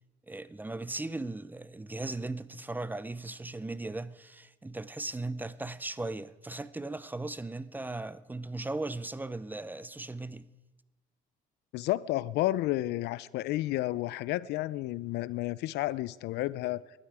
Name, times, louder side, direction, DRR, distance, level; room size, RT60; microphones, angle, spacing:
voice 1, 0.3-10.5, right 2 dB, 10° right, 0.4 m, -37 dB
voice 2, 11.7-16.8, left 16 dB, 80° left, 0.5 m, -31 dB
19.5 x 12.0 x 4.8 m
cardioid pair, 110°, 17 cm